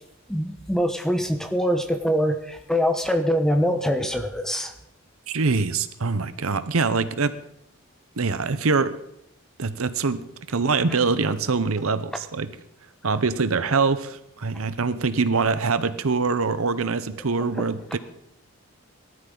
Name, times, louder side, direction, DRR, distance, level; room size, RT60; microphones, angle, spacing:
voice 1, 0.3-4.7 17.5-17.6, equal, ahead, 6 dB, 1.0 m, -24 dB
voice 2, 5.3-7.3 8.2-9.0 9.6-10.2 10.5-12.6 13.0-18.0, right 4 dB, 75° right, 13 dB, 0.8 m, -24 dB
19.0 x 13.0 x 3.9 m, 0.76 s
head